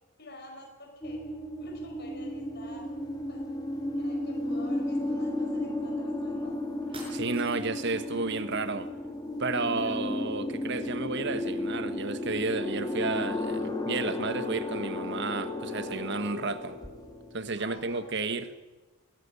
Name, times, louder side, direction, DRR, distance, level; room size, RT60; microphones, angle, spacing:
voice 1, 0.2-1.3 1.6-2.9 3.3-3.4 3.7-6.5 9.7-10.1 17.6-18.4, left 1 dB, 50° left, 2 dB, 5.2 m, -49 dB
sound 1, 1.0-17.9, left 1 dB, 20° left, 2.3 m, -34 dB
sound 2, 6.9-7.9, right 2 dB, 25° right, 5.8 m, -47 dB
voice 2, 7.1-8.9 9.4-16.8 17.3-18.5, right 3 dB, 55° right, 11 dB, 1.4 m, -32 dB
21.0 x 13.0 x 9.9 m, 1.2 s
head